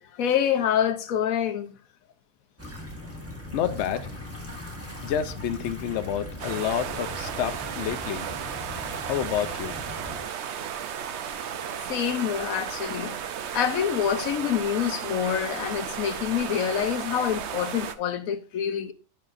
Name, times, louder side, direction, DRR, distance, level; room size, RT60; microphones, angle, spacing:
voice 1, 0.2-1.8 11.9-13.2 13.5-18.9, left 9 dB, 90° left, 1.2 m, -26 dB
sound 1, 2.6-10.2, left 1 dB, 10° right, 1.3 m, -39 dB
voice 2, 3.5-4.1 5.0-8.3 9.1-9.8, left 9 dB, 65° left, 0.9 m, -29 dB
sound 2, 6.4-17.9, right 8 dB, 65° right, 0.9 m, -34 dB
12.0 x 5.6 x 2.6 m
omnidirectional pair, 1.4 m